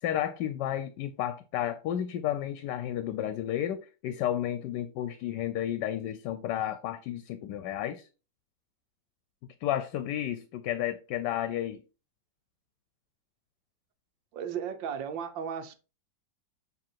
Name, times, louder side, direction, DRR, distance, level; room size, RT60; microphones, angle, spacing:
voice 1, 0.0-8.1 9.6-11.8, left 11 dB, 75° left, 1.2 m, -32 dB
voice 2, 14.3-15.8, right 7 dB, 90° right, 1.5 m, -35 dB
7.5 x 3.5 x 4.5 m
omnidirectional pair, 2.0 m